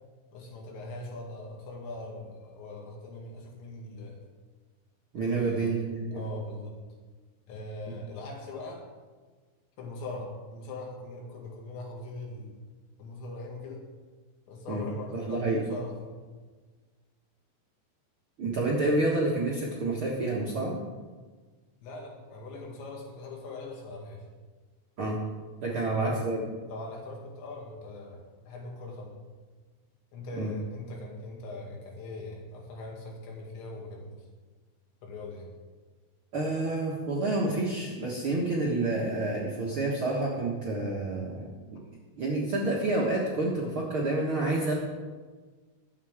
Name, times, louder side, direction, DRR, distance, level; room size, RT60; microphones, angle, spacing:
voice 1, 0.3-4.2 5.2-5.8 6.1-6.8 7.5-8.8 9.8-12.6 13.0-13.8 14.5-16.1 21.8-24.3 25.6-26.3 26.7-29.1 30.1-34.2 35.0-35.5, left 2 dB, 90° left, 0 dB, 4.4 m, -41 dB
voice 2, 5.1-6.2 7.9-8.0 14.7-14.8 15.1-15.6 18.4-20.7 25.0-25.2 25.6-26.5 30.3-30.5 36.3-41.5 42.2-44.7, right 2 dB, 55° right, -5 dB, 1.5 m, -28 dB
21.5 x 8.5 x 3.7 m, 1.4 s
omnidirectional pair, 5.0 m